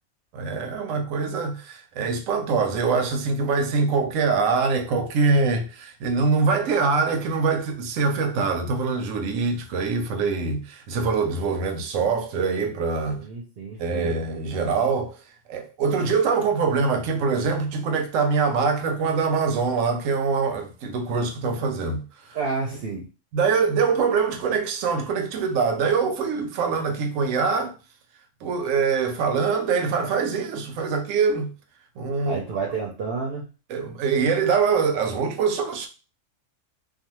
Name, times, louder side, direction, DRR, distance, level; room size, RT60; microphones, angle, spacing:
voice 1, 0.3-13.2 13.8-15.2 15.5-22.0 23.3-27.7 28.4-31.5 32.0-32.4 33.7-35.9, right 5 dB, 80° right, 1.0 m, -24 dB
voice 2, 13.1-14.1 22.3-23.1 32.3-33.5, right 4 dB, 60° right, 0.8 m, -30 dB
2.4 x 2.3 x 2.9 m
omnidirectional pair, 1.3 m